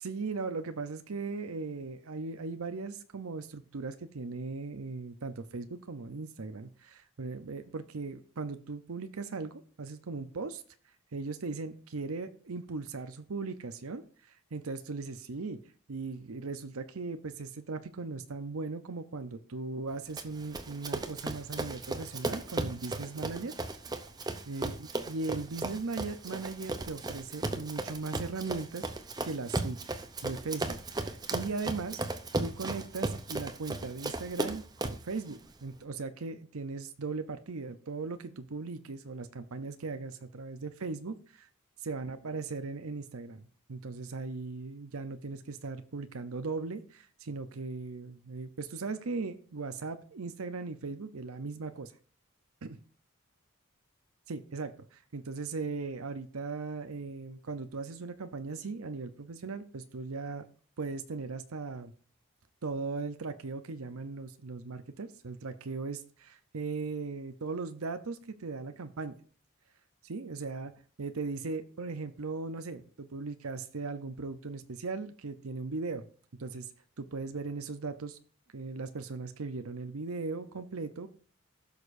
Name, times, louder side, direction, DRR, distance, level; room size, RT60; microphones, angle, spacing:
voice 1, 0.0-10.6 11.1-15.6 15.9-23.5 24.5-28.9 29.2-29.8 30.2-32.0 32.4-41.5 41.8-51.9 52.6-52.8 54.3-60.4 60.8-61.9 62.6-69.1 70.0-70.7 71.0-76.0 76.4-76.7 77.0-78.2 78.5-81.1, right 4 dB, 80° right, 10 dB, 0.7 m, -38 dB
Run, 20.2-35.1, right 2 dB, 20° right, 0.6 m, -36 dB
15.5 x 6.5 x 2.6 m, 0.42 s
head